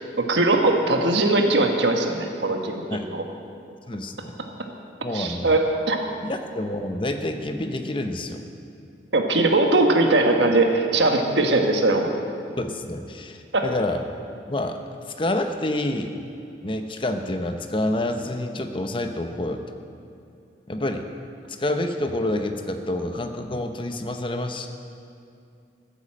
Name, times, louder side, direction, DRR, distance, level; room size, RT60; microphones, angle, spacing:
voice 1, 0.3-3.2 5.1-6.0 9.1-12.1 13.5-13.6, right 2 dB, 85° right, 3 dB, 1.4 m, -20 dB
voice 2, 3.9-4.3 5.0-5.6 6.2-8.4 12.6-14.0 14.5-14.8 15.2-16.2 16.6-19.6 20.7-21.1 21.5-24.7, left 1 dB, 30° left, 6 dB, 0.8 m, -28 dB
14.5 x 8.4 x 7.6 m, 2.5 s
head